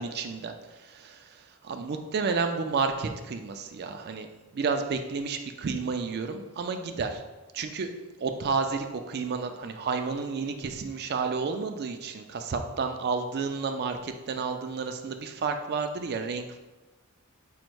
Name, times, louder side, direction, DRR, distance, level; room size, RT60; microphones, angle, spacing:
voice 1, 0.0-4.3 4.5-7.2 7.5-7.9 8.2-16.6, right 4 dB, 45° right, 6 dB, 0.4 m, -31 dB
5.2 x 2.1 x 4.5 m, 1.1 s
head